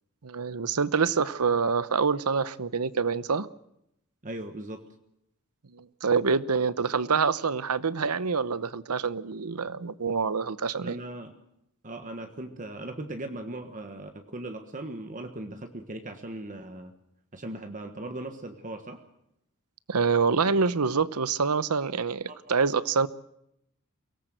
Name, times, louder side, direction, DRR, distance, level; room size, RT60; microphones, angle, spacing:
voice 1, 0.2-3.5 5.7-11.0 19.9-23.1, right 5 dB, 85° right, 16 dB, 0.9 m, -26 dB
voice 2, 4.2-4.8 10.8-11.4 11.8-16.9 17.3-19.0 22.3-22.4, right 1 dB, 35° right, 6 dB, 1.4 m, -38 dB
23.5 x 18.0 x 7.9 m, 0.80 s
head